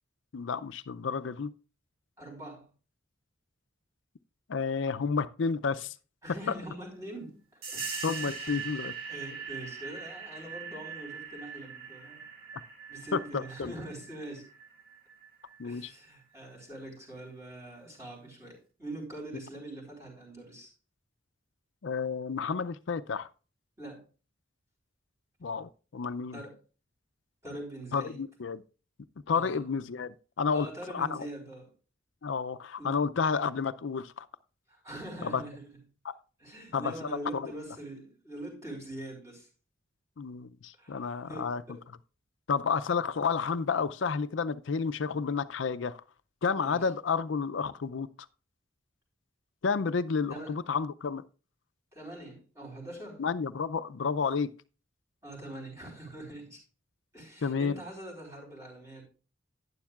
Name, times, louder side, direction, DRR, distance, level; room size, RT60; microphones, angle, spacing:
voice 1, 0.3-1.5 4.5-5.9 8.0-8.9 13.1-13.7 15.6-15.9 21.8-23.3 25.4-26.4 27.9-28.6 29.3-30.7 30.9-31.3 32.2-34.3 35.2-35.4 36.0-36.1 36.7-37.5 40.2-41.6 42.5-46.0 46.4-48.1 49.6-51.2 53.2-54.5 57.4-57.8, left 5 dB, 65° left, 0.5 m, -31 dB
voice 2, 2.2-2.6 6.2-12.3 12.9-14.5 15.6-20.7 23.8-24.0 26.3-26.6 27.4-28.2 29.3-29.6 30.5-31.7 32.8-33.1 34.7-35.7 36.4-39.5 40.8-41.8 46.5-46.9 50.3-50.6 51.9-53.2 55.2-56.6 57.1-59.0, right 1 dB, 15° right, 4.2 m, -43 dB
sound 1, 7.6-15.9, right 5 dB, 50° right, 2.0 m, -41 dB
11.5 x 9.8 x 2.4 m
head